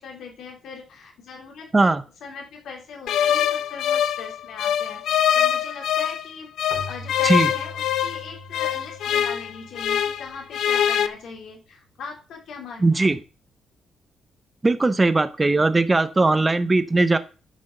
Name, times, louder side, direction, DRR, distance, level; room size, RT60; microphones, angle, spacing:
voice 1, 0.0-1.9 2.2-13.2, left 5 dB, 70° left, 1 dB, 3.3 m, -40 dB
sound 1, 3.1-6.2 6.6-10.3 10.5-11.1, left 10 dB, 85° left, 0.8 m, -23 dB
Keyboard (musical), 6.7-11.2, equal, 40° right, 1.8 m, -43 dB
voice 2, 12.8-13.2 14.6-17.2, right 2 dB, 15° right, 12 dB, 0.7 m, -19 dB
9.7 x 6.3 x 6.6 m, 0.35 s
cardioid pair, 160°, 0 cm